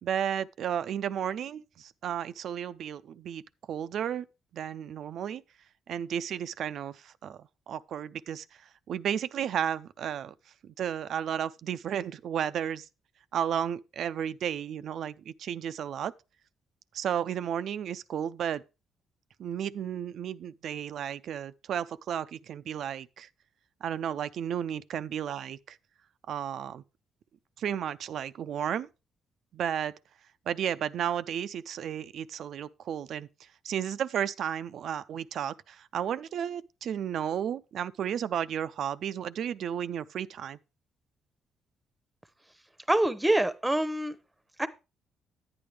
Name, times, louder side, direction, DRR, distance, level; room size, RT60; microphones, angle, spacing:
voice 1, 0.0-3.4 3.7-4.3 4.5-5.4 5.9-10.3 10.6-12.9 13.3-16.1 16.9-18.6 19.4-23.3 23.8-25.8 26.3-26.8 27.6-28.9 29.5-29.9 30.5-33.3 33.6-40.6, right 9 dB, 70° right, 0.4 m, -33 dB
voice 2, 42.9-44.2 44.6-44.7, right 1 dB, 10° right, 0.8 m, -25 dB
10.0 x 8.8 x 3.3 m
cardioid pair, 90°, 0 cm